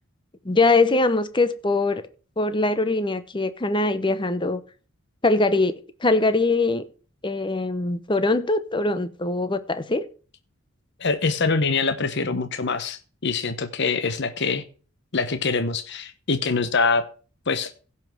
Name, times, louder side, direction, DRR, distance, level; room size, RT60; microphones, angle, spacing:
voice 1, 0.4-2.0 2.4-4.6 5.2-6.8 7.2-10.1, left 2 dB, 20° left, 0.8 m, -22 dB
voice 2, 11.0-14.6 15.1-17.0 17.5-17.7, left 4 dB, 55° left, 0.9 m, -24 dB
16.0 x 5.8 x 4.5 m
head